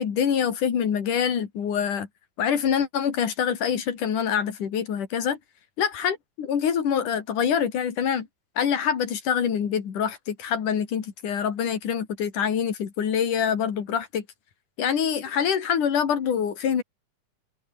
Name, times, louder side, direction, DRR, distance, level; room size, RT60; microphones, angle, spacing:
voice 1, 0.0-2.1 2.4-5.4 5.8-8.3 8.6-14.2 14.8-16.8, left 8 dB, 80° left, 4.2 m, -25 dB
open air
omnidirectional pair, 3.6 m